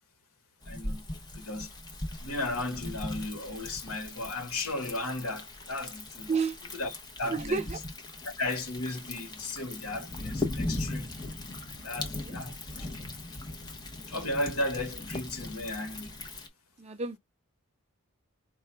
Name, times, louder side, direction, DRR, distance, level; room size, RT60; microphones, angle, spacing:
Thunder, 0.6-16.5, left 2 dB, 20° left, 0.8 m, -39 dB
voice 1, 0.7-1.0 1.3-1.7 2.2-6.3 6.7-7.6 8.2-11.1 11.7-13.1 14.1-16.1, left 2 dB, 70° left, 1.2 m, -35 dB
voice 2, 7.3-7.8 12.2-12.4 16.8-17.2, right 4 dB, 30° right, 0.4 m, -30 dB
4.7 x 2.3 x 4.3 m
head